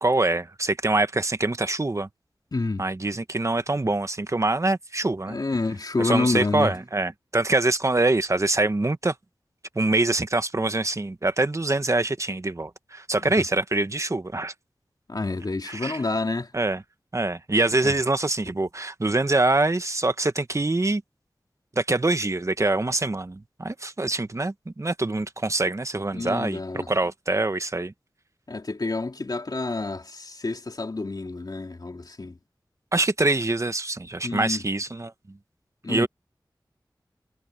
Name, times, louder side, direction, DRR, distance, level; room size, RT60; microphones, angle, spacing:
voice 1, 0.0-2.1 2.8-5.4 6.0-9.1 9.7-14.5 15.6-16.0 16.5-16.8 17.1-21.0 21.7-27.9 32.9-35.4 35.9-36.1, right 2 dB, 40° right, 1.3 m, -24 dB
voice 2, 2.5-2.8 5.3-6.7 13.2-13.3 15.1-16.5 17.8-18.0 26.1-26.9 28.5-32.4 34.2-34.6 35.8-36.1, left 3 dB, 55° left, 3.2 m, -28 dB
wide cardioid pair, 55°, 8 cm